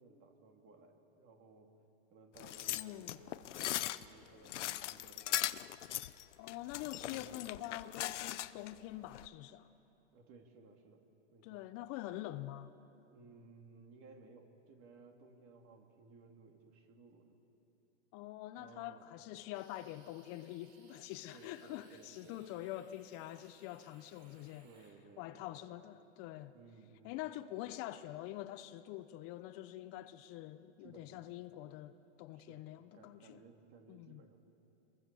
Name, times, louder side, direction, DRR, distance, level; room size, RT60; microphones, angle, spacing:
voice 1, 0.0-1.7 2.1-3.5 3.8-5.6 7.0-7.4 10.1-11.0 11.3-11.7 13.1-17.4 18.5-19.1 21.3-22.7 24.6-25.7 26.5-27.2 30.8-31.2 32.3-34.4, right 4 dB, 40° right, 3.1 m, -60 dB
sound 1, 2.4-8.7 9.1-9.3, left 13 dB, 80° left, 0.8 m, -39 dB
voice 2, 2.8-3.2 6.4-9.7 11.4-12.7 18.1-24.7 25.2-26.5 27.0-33.4 33.9-34.2, left 14 dB, 40° left, 0.8 m, -45 dB
sound 2, 19.5-24.9, right 4 dB, 70° right, 6.4 m, -67 dB
27.0 x 22.5 x 7.1 m
hypercardioid pair, 120°, 35 cm